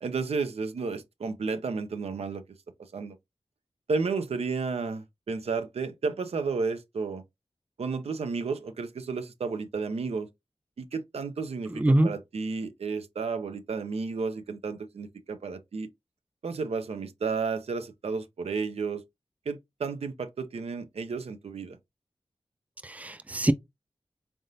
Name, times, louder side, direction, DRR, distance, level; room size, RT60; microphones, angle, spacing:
voice 1, 0.0-2.4 2.9-3.2 3.9-7.2 7.8-10.3 10.8-15.9 16.4-19.0 19.5-21.8, right 4 dB, 85° right, 0.6 m, -32 dB
voice 2, 11.7-12.1 22.8-23.5, right 1 dB, 15° right, 0.5 m, -24 dB
3.8 x 3.4 x 2.7 m
cardioid pair, 40°, 10 cm